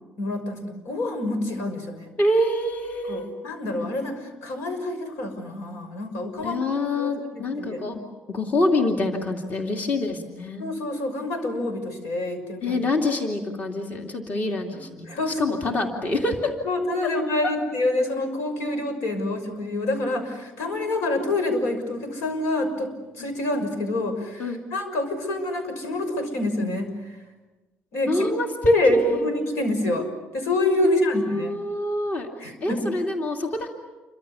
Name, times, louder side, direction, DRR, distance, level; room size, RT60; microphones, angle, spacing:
voice 1, 0.2-2.1 3.1-6.7 6.9-7.8 10.6-12.8 14.7-15.8 16.6-27.2 27.9-28.4 28.7-30.1 30.3-31.6 32.4-32.8, left 2 dB, 90° left, 7 dB, 6.3 m, -27 dB
voice 2, 2.2-3.3 6.4-8.0 8.3-10.6 12.6-15.1 15.4-16.5 17.0-17.1 17.4-17.5 23.2-23.3 24.4-24.6 28.1-29.3 30.8-33.7, left 1 dB, 35° left, 2 dB, 2.7 m, -26 dB
29.0 x 25.0 x 7.1 m, 1.2 s
cardioid pair, 150°, 4 cm